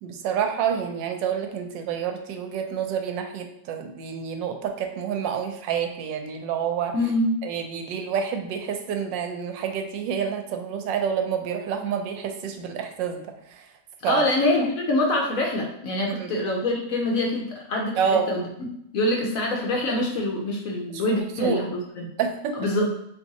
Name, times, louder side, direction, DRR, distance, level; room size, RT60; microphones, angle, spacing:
voice 1, 0.0-6.9 7.4-13.2 13.5-13.7 14.0-14.2 16.2-16.4 18.0-18.3 21.1-21.6 22.2-22.6, right 7 dB, 90° right, 6 dB, 1.3 m, -28 dB
voice 2, 6.9-7.4 14.0-18.5 18.9-22.1 22.6-22.9, left 1 dB, 65° left, 0 dB, 0.9 m, -25 dB
3.6 x 3.0 x 4.0 m, 0.77 s
omnidirectional pair, 1.9 m